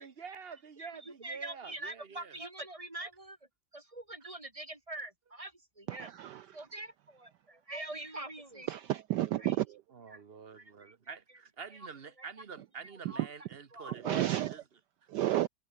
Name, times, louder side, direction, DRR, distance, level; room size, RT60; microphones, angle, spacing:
voice 1, 0.0-2.4 9.9-14.2 14.5-14.6, right 6 dB, 35° right, 1.1 m, -47 dB
voice 2, 0.8-3.4 3.7-6.1 6.5-8.7 9.4-9.5 10.1-10.2 10.6-11.2 12.2-12.3 13.1-13.2 13.7-14.3, right 2 dB, 15° right, 4.3 m, -44 dB
voice 3, 5.9-6.7 8.7-9.8 13.0-13.3 13.9-14.6 15.1-15.5, right 14 dB, 75° right, 0.9 m, -32 dB
omnidirectional pair, 2.3 m